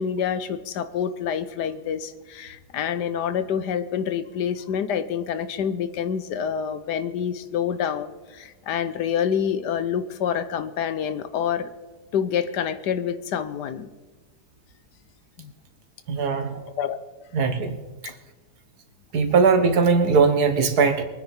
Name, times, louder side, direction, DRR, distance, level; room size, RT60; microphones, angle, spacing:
voice 1, 0.0-11.7 12.1-13.9 15.4-15.5 16.2-16.3 16.8-17.0 18.0-18.1, left 8 dB, 85° left, 12 dB, 1.4 m, -27 dB
voice 2, 16.1-16.6 17.3-17.8 19.1-21.0, right 5 dB, 70° right, 8 dB, 1.8 m, -20 dB
23.0 x 9.6 x 4.5 m, 1.2 s
omnidirectional pair, 1.8 m